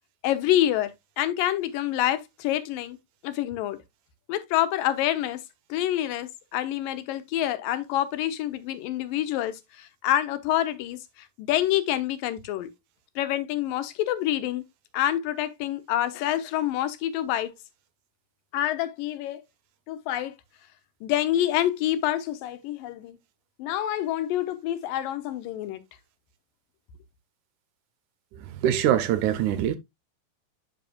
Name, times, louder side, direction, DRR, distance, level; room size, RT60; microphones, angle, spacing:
voice 1, 0.2-0.9 1.2-3.0 3.2-3.8 4.3-5.4 5.7-12.7 13.2-14.6 14.9-17.5 18.5-19.4 19.9-20.3 21.0-23.2 23.6-25.8, left 12 dB, 90° left, 2.6 m, -27 dB
voice 2, 28.6-29.8, right 11 dB, 75° right, 2.0 m, -23 dB
11.5 x 5.3 x 2.3 m
omnidirectional pair, 3.9 m